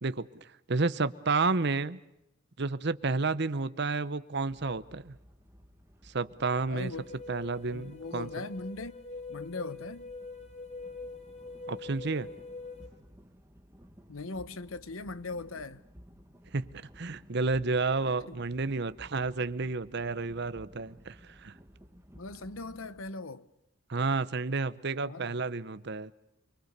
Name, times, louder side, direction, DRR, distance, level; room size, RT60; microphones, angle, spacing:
voice 1, 0.0-2.0 2.6-5.2 6.0-6.9 7.3-8.3 11.7-12.3 16.5-21.5 23.9-26.1, right 3 dB, 55° right, 0.9 m, -31 dB
sound 1, 4.5-23.1, equal, 10° right, 1.9 m, -56 dB
voice 2, 6.7-7.2 7.7-9.0 9.3-10.1 14.1-15.8 18.3-18.4 22.1-23.5 25.0-25.4, left 3 dB, 75° left, 1.0 m, -40 dB
sound 2, 6.9-12.9, left 3 dB, 30° left, 3.3 m, -44 dB
28.5 x 22.5 x 6.8 m
head